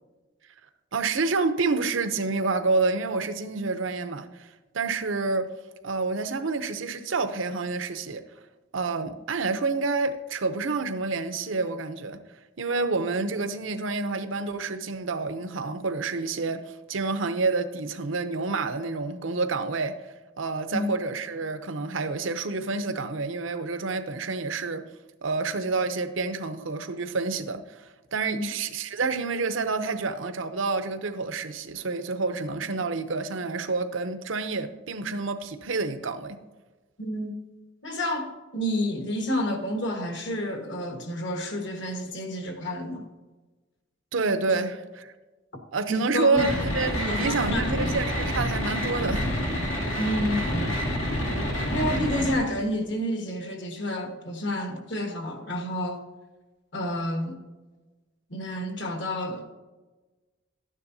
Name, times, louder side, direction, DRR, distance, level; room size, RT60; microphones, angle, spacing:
voice 1, 0.9-4.5 4.7-5.5 5.8-8.2 8.7-12.2 12.6-20.0 20.4-24.8 25.2-36.4 44.1-45.1 45.7-49.3, right 3 dB, 80° right, 0.7 m, -28 dB
voice 2, 37.0-37.3 37.8-43.1 44.5-44.6 45.9-46.5 47.0-47.6 50.0-50.6 51.7-56.0 56.7-57.4 58.3-59.5, left 1 dB, 65° left, 1.5 m, -30 dB
sound 1, 46.4-52.4, equal, 90° left, 2.3 m, -28 dB
12.5 x 9.9 x 2.7 m
head